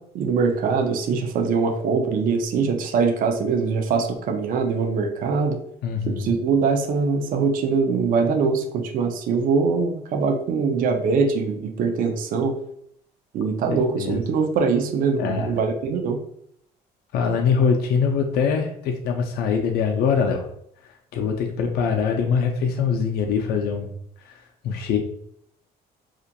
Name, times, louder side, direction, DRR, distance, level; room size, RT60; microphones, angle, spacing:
voice 1, 0.1-5.6 6.1-12.5 13.3-16.2, right 5 dB, 55° right, 3 dB, 0.4 m, -22 dB
voice 2, 5.8-6.3 13.7-14.2 15.2-15.5 17.1-20.5 21.1-23.9 24.2-25.0, left 6 dB, 70° left, 3 dB, 0.4 m, -23 dB
2.4 x 2.1 x 2.7 m, 0.68 s
cardioid pair, 110°, 17 cm